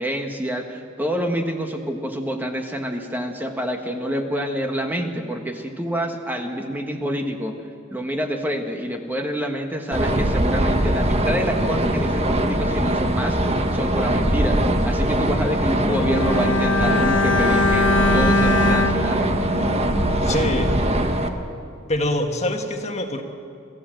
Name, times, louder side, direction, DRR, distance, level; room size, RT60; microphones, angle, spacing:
voice 1, 0.0-7.6 7.9-19.2, equal, 10° right, 3 dB, 1.4 m, -27 dB
sound 1, 9.9-21.3, right 1 dB, 30° right, 1.4 m, -21 dB
Bowed string instrument, 15.9-20.3 20.6-20.8, left 2 dB, 70° left, 1.1 m, -22 dB
voice 2, 20.2-20.7 21.9-23.2, left 1 dB, 35° left, 4 dB, 1.7 m, -25 dB
27.0 x 15.5 x 7.8 m, 2.4 s
head